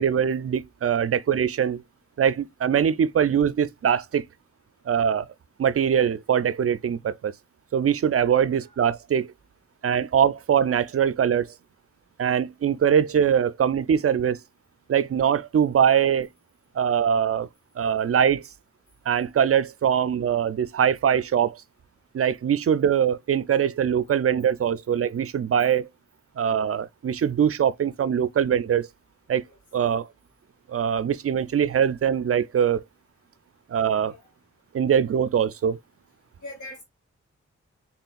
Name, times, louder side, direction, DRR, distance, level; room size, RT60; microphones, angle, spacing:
voice 1, 0.0-1.8 2.2-4.2 4.9-5.3 5.6-7.3 7.7-9.3 9.8-11.5 12.2-14.4 14.9-16.3 16.7-17.5 17.8-18.4 19.1-21.6 22.1-25.9 26.4-28.9 29.3-29.4 29.7-30.1 30.7-32.8 33.7-34.1 34.7-35.8, right 8 dB, 50° right, 0.4 m, -22 dB
voice 2, 8.4-8.8 29.5-29.6 34.1-34.2 36.4-36.8, left 1 dB, 85° left, 2.3 m, -42 dB
4.3 x 3.5 x 2.3 m
cardioid pair, 55°, 29 cm